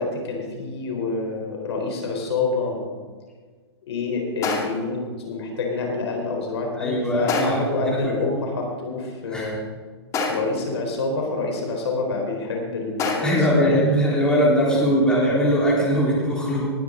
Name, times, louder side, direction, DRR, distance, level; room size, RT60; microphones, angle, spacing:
voice 1, 0.0-2.9 3.9-9.6 10.3-13.9 14.7-14.8, left 3 dB, 70° left, 1 dB, 4.0 m, -27 dB
sound 1, 2.1-2.2 4.4-5.0 7.3-7.8 10.1-10.7 13.0-13.6, left 3 dB, 25° left, 2.2 m, -27 dB
voice 2, 6.7-8.1 9.3-9.5 13.2-16.7, equal, 5° left, -5 dB, 3.7 m, -21 dB
19.5 x 10.5 x 3.8 m, 1.5 s
hypercardioid pair, 130°, 14 cm